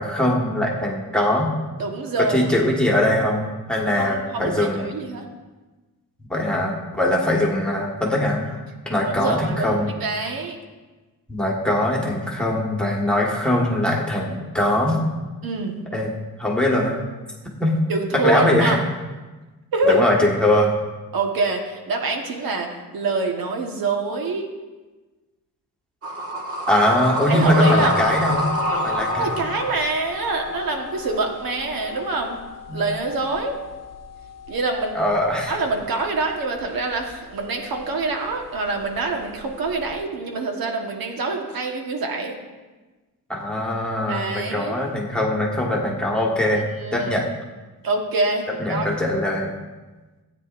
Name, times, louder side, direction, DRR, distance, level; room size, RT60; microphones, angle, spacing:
voice 1, 0.0-1.5 2.2-4.9 6.3-8.6 8.8-9.9 11.3-15.0 15.9-17.0 17.6-17.8 18.1-18.8 19.9-20.8 26.7-29.4 32.7-32.8 34.9-35.5 43.3-47.3 48.6-49.5, left 1 dB, 5° left, -3 dB, 1.5 m, -21 dB
voice 2, 1.8-2.7 4.0-5.3 9.2-10.6 15.4-15.8 17.9-18.8 19.7-20.0 21.1-24.5 27.3-28.0 29.2-32.4 32.7-33.6 34.5-35.0 35.5-42.4 44.1-44.8 46.5-47.1 47.8-48.9, right 3 dB, 70° right, 2 dB, 1.4 m, -25 dB
sound 1, 26.0-32.3, right 1 dB, 40° right, 1.6 m, -29 dB
sound 2, 27.6-40.0, left 5 dB, 45° left, 0.9 m, -34 dB
16.5 x 9.3 x 2.6 m, 1.2 s
cardioid pair, 140°, 36 cm